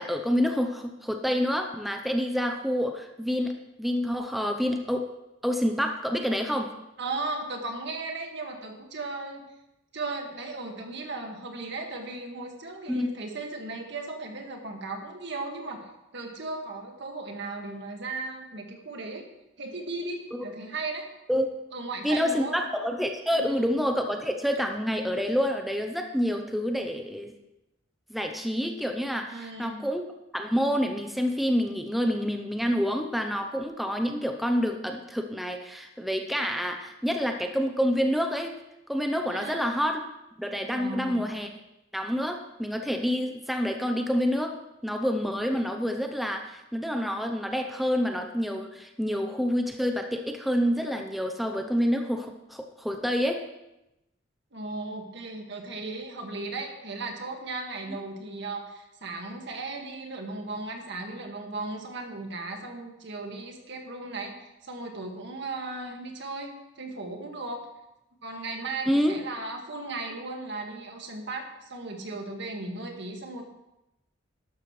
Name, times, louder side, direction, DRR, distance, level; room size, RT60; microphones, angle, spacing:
voice 1, 0.0-3.5 3.8-5.1 5.4-6.7 12.9-13.1 20.3-20.4 21.3-21.5 22.0-27.3 28.1-30.1 30.3-38.6 38.9-40.0 40.4-41.5 41.9-44.6 44.8-53.4 68.9-69.2, equal, ahead, 4 dB, 0.7 m, -28 dB
voice 2, 7.0-9.4 9.9-19.3 19.6-21.1 21.7-22.6 23.3-23.7 29.3-29.9 39.3-39.6 40.7-41.2 54.5-67.7 68.2-73.4, right 3 dB, 65° right, 2 dB, 1.8 m, -36 dB
13.0 x 12.0 x 3.2 m, 0.91 s
head